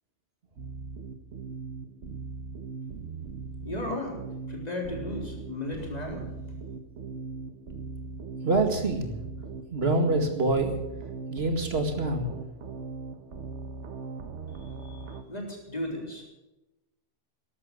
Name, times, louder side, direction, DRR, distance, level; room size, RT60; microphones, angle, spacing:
sound 1, 0.6-15.2, right 4 dB, 75° right, 1.5 m, -39 dB
voice 1, 3.6-4.2 4.5-6.2 14.5-16.2, left 1 dB, 35° left, 0 dB, 3.9 m, -35 dB
voice 2, 8.4-9.1 9.7-10.8 11.3-12.3, right 2 dB, 60° right, 5 dB, 2.3 m, -25 dB
13.5 x 12.0 x 8.2 m, 0.98 s
omnidirectional pair, 1.2 m